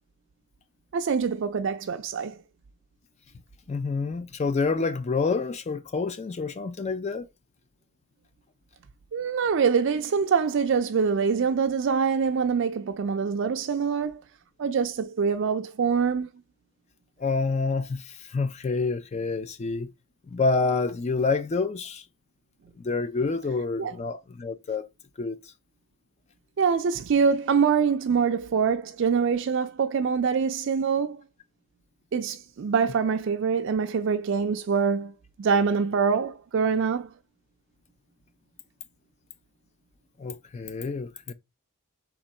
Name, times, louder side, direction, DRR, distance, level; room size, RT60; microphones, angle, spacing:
voice 1, 0.9-2.4 9.1-14.2 14.6-16.3 23.8-23.9 26.6-31.2 32.1-35.1 35.4-37.1, right 6 dB, 55° right, 0.4 m, -24 dB
voice 2, 3.7-7.3 17.2-19.9 20.3-22.0 22.8-24.9 25.2-25.4 40.2-41.3, left 4 dB, 30° left, 0.3 m, -28 dB
3.6 x 2.9 x 4.2 m
head